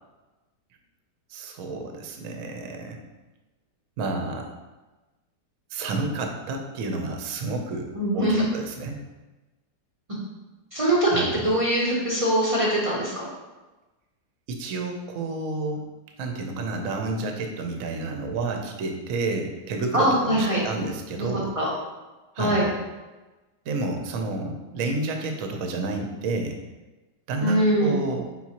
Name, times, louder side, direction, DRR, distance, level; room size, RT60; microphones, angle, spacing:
voice 1, 1.3-3.0 4.0-4.5 5.7-9.0 11.1-11.4 14.5-15.8 16.2-21.5 22.3-22.7 23.7-26.6 27.3-28.3, right 3 dB, 65° right, 3 dB, 0.9 m, -30 dB
voice 2, 7.9-8.4 10.7-13.3 19.9-20.6 21.6-21.7 22.4-22.6 27.4-28.0, right 1 dB, 45° right, -6 dB, 0.4 m, -22 dB
4.5 x 3.8 x 2.8 m, 1.2 s
omnidirectional pair, 1.9 m